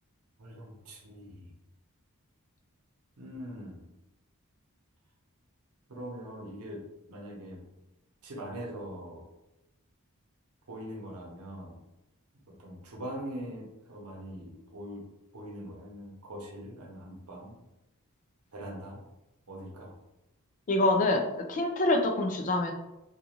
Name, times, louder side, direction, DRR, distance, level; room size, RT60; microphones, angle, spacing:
voice 1, 0.4-1.5 3.2-3.8 5.9-7.6 8.2-9.3 10.7-11.8 12.5-15.0 15.3-17.6 18.5-19.0 19.5-19.9, equal, 85° right, -1 dB, 0.7 m, -42 dB
voice 2, 20.7-21.2 21.5-22.7, left 2 dB, 35° left, 4 dB, 0.4 m, -25 dB
2.4 x 2.3 x 3.0 m, 0.94 s
head